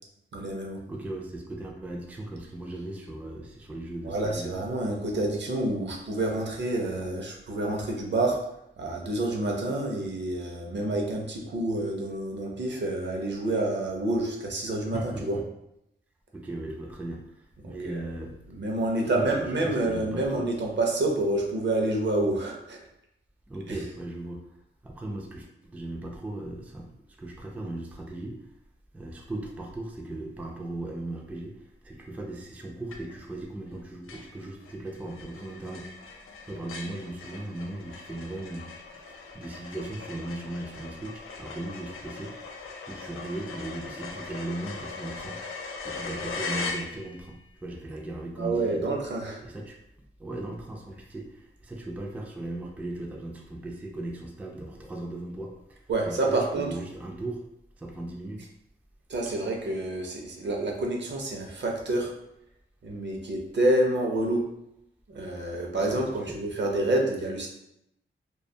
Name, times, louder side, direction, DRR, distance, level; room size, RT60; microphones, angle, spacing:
voice 1, 0.3-0.8 4.0-8.4 8.8-15.4 17.8-18.0 18.5-22.8 48.4-49.4 55.9-56.7 59.1-62.1 62.8-64.4 65.1-67.5, right 2 dB, 60° right, 0 dB, 0.6 m, -28 dB
voice 2, 0.9-4.6 14.9-15.4 16.3-18.4 19.0-20.5 23.5-24.6 24.8-26.9 27.2-28.5 28.9-38.7 39.3-45.4 45.8-49.0 49.4-57.4 57.8-58.5 59.2-59.3 65.9-66.4, right 1 dB, 5° right, 0 dB, 0.3 m, -38 dB
sound 1, 32.9-33.4 33.7-33.8 34.1-47.4, left 4 dB, 90° left, 0.4 m, -40 dB
2.4 x 2.2 x 2.6 m, 0.81 s
wide cardioid pair, 105°, 21 cm